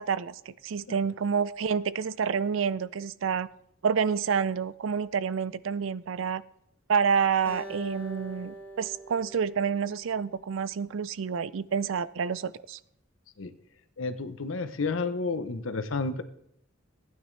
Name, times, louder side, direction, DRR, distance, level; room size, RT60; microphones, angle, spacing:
voice 1, 0.0-3.5 3.8-6.4 6.9-12.8, right 6 dB, 80° right, 17 dB, 0.4 m, -28 dB
Acoustic guitar, 7.5-10.8, right 1 dB, 10° left, 2.0 m, -45 dB
voice 2, 14.0-16.2, left 3 dB, 80° left, 11 dB, 0.8 m, -31 dB
15.0 x 9.3 x 3.3 m, 0.76 s
head